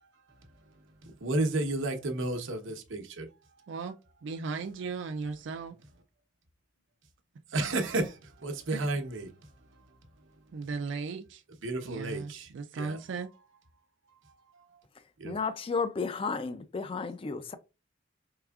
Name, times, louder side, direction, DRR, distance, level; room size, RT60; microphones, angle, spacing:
voice 1, 1.0-3.3 3.6-3.7 7.5-8.1 8.4-9.4 11.6-12.5 12.7-13.0 14.6-14.7 15.2-15.4, right 2 dB, 85° right, 0.9 m, -32 dB
voice 2, 4.2-5.8 8.7-8.8 10.5-11.4 11.8-13.3, right 4 dB, 65° right, 0.4 m, -36 dB
voice 3, 15.2-17.5, left 4 dB, 30° left, 0.3 m, -32 dB
4.7 x 3.4 x 2.3 m
head